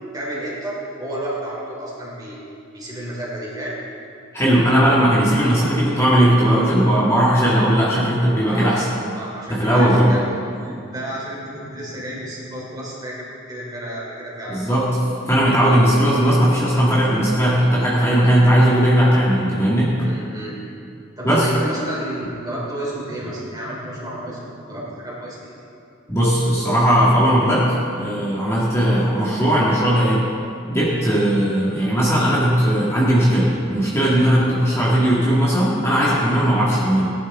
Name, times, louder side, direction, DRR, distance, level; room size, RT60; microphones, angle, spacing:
voice 1, 0.1-2.4 2.7-3.8 8.4-8.8 9.1-14.8 20.0-20.6 21.2-25.6, right 1 dB, 20° right, -5 dB, 3.3 m, -31 dB
voice 2, 4.3-8.8 9.5-10.1 14.5-20.0 21.2-21.5 26.1-30.3 30.7-37.1, equal, 15° left, -8 dB, 1.8 m, -17 dB
18.5 x 11.0 x 3.6 m, 2.5 s
head